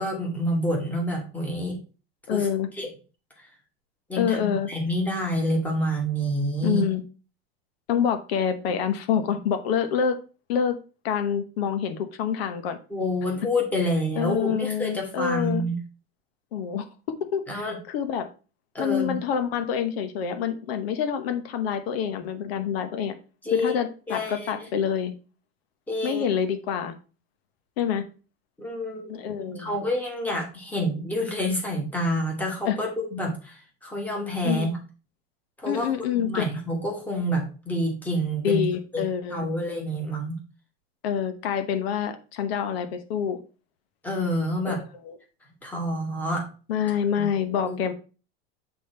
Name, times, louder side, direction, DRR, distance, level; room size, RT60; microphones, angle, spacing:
voice 1, 0.0-1.8 2.3-2.5 2.8-2.9 4.1-6.8 12.9-15.8 17.5-17.8 18.7-19.2 23.4-23.7 24.1-24.7 25.9-26.2 28.6-29.1 29.4-34.8 35.6-35.9 36.1-38.6 38.9-40.4 44.0-44.8 45.6-46.5 47.1-47.3 47.6-47.9, equal, 5° left, -1 dB, 1.3 m, -28 dB
voice 2, 2.3-2.7 4.2-4.7 6.6-7.0 7.9-10.2 10.5-10.8 11.0-12.8 14.2-15.6 16.5-16.8 17.3-17.6 17.9-18.3 18.8-23.1 23.5-25.1 26.0-26.9 27.8-28.0 29.1-29.8 32.7-32.8 34.4-34.7 35.7-36.4 38.4-39.5 41.0-43.4 44.6-45.2 46.7-47.9, left 8 dB, 70° left, 9 dB, 1.0 m, -26 dB
8.4 x 3.5 x 4.3 m, 0.35 s
supercardioid pair, 180°, 32 cm